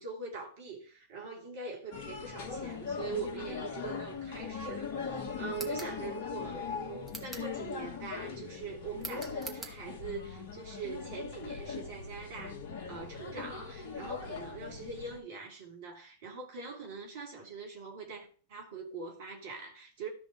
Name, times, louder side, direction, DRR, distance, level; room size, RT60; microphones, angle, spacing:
voice 1, 0.0-12.6 12.9-20.1, right 4 dB, 55° right, 3.2 m, -43 dB
sound 1, 1.9-15.2, left 5 dB, 50° left, 1.7 m, -40 dB
sound 2, 5.5-6.0 7.0-7.5 9.0-9.8, right 2 dB, 10° right, 2.1 m, -44 dB
13.5 x 5.3 x 5.1 m
figure-of-eight pair, 90°, 0 cm